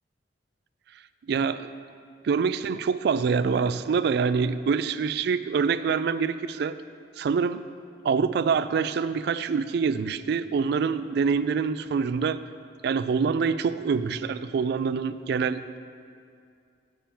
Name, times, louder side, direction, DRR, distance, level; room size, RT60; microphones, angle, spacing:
voice 1, 1.3-1.7 2.2-6.7 7.2-7.6 8.0-12.4 12.8-15.8, right 5 dB, 60° right, 13 dB, 0.3 m, -25 dB
7.4 x 5.7 x 7.0 m, 2.4 s
head